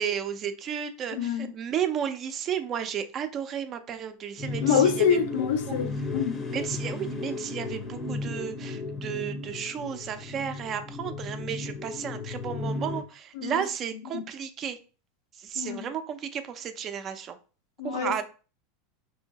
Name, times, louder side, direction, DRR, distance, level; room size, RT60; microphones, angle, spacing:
voice 1, 0.0-5.2 6.5-14.8 15.4-17.4 17.8-18.2, right 8 dB, 40° right, 0.4 m, -33 dB
voice 2, 1.1-1.5 4.6-6.4 13.4-13.6 14.1-14.2 15.6-15.9 17.8-18.2, left 7 dB, 75° left, 0.4 m, -26 dB
sound 1, 4.4-13.0, left 3 dB, 25° left, 0.6 m, -35 dB
2.8 x 2.7 x 2.7 m
hypercardioid pair, 105°, 0 cm